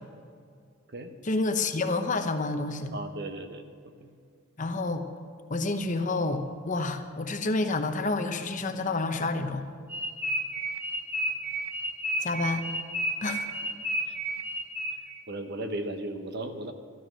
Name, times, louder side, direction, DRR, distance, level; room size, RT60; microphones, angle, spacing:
voice 1, 1.2-2.9 4.6-5.1 5.5-9.6 12.2-12.7 13.2-13.6, left 3 dB, 40° left, 7 dB, 0.9 m, -29 dB
voice 2, 2.9-3.6 4.0-4.1 15.3-16.7, right 1 dB, 55° right, 7 dB, 1.1 m, -35 dB
sound 1, 9.9-15.2, right 1 dB, 10° right, 1.7 m, -32 dB
13.0 x 13.0 x 6.3 m, 2.2 s
head